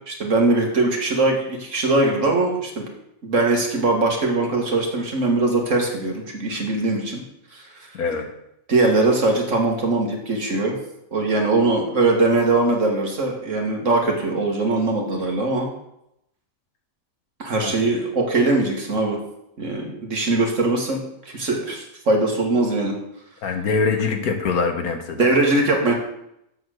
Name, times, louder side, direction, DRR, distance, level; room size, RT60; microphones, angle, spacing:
voice 1, 0.1-2.8 3.2-7.2 7.5-7.9 8.7-10.7 11.1-15.7 17.4-19.2 19.6-22.9 25.2-25.9, right 2 dB, 60° right, 0 dB, 2.1 m, -21 dB
voice 2, 7.9-8.3 17.6-17.8 23.4-25.3, left 4 dB, 90° left, 5 dB, 1.7 m, -23 dB
7.7 x 6.5 x 6.5 m, 0.80 s
omnidirectional pair, 1.5 m